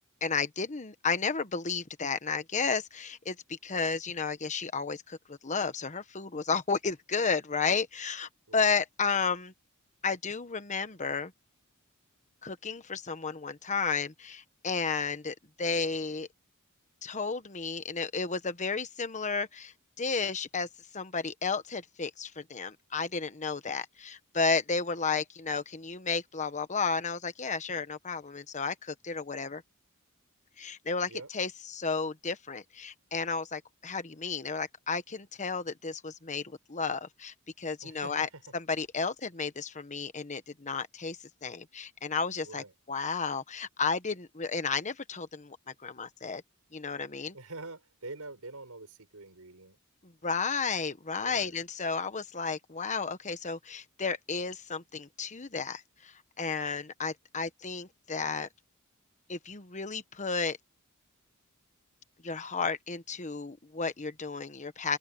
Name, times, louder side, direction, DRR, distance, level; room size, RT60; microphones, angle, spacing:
voice 1, 0.2-9.5 10.0-11.3 12.4-16.3 17.0-20.7 20.9-29.6 30.6-46.4 46.7-47.4 50.0-58.5 59.3-60.6 62.2-65.0, left 5 dB, 35° left, 1.2 m, -33 dB
voice 2, 37.8-38.4 42.4-42.7 47.3-49.8 51.2-51.5, right 2 dB, 90° right, 5.2 m, -45 dB
head